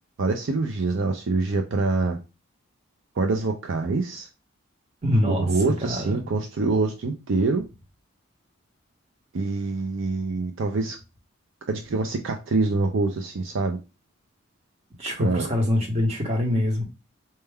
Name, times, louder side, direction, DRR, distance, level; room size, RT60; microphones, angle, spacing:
voice 1, 0.2-2.2 3.2-4.3 5.3-7.6 9.3-11.0 11.7-13.8 15.2-15.5, right 3 dB, 65° right, 0.4 m, -25 dB
voice 2, 5.0-6.3 15.0-16.8, left 1 dB, 30° right, 0.9 m, -24 dB
4.3 x 2.2 x 3.4 m
head